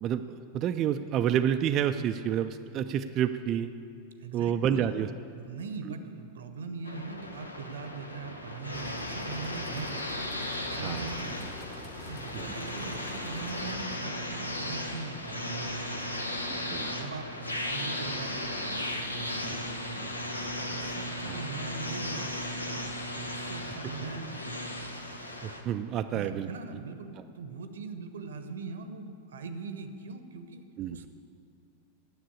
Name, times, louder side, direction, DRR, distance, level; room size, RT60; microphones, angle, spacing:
voice 1, 0.0-3.7 4.3-5.1 5.9-6.0 10.8-11.1 12.3-12.4 16.5-16.9 21.3-21.4 25.4-26.5 30.8-30.9, right 9 dB, 35° right, 8 dB, 0.4 m, -29 dB
voice 2, 4.2-5.0 5.3-10.0 10.6-11.6 12.1-16.2 16.9-20.1 20.5-22.7 23.1-24.6 26.1-30.6 30.9-31.1, right 4 dB, 65° right, 9 dB, 0.8 m, -41 dB
sound 1, 6.8-25.6, left 1 dB, 85° left, 0.8 m, -36 dB
sound 2, 8.7-14.1, left 2 dB, 15° left, 1.0 m, -47 dB
10.0 x 7.4 x 8.5 m, 2.5 s
figure-of-eight pair, 90°, 0 cm